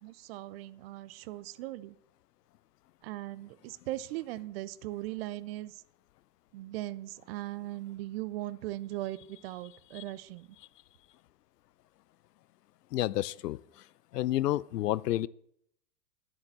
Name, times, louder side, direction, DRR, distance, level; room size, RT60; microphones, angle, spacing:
voice 1, 0.0-2.0 3.0-5.8 6.5-10.5, right 16 dB, 40° right, 18 dB, 0.5 m, -39 dB
voice 2, 12.9-13.6 14.1-15.3, left 14 dB, 75° left, 22 dB, 0.6 m, -30 dB
9.6 x 8.6 x 7.4 m, 0.72 s
hypercardioid pair, 120°, 49 cm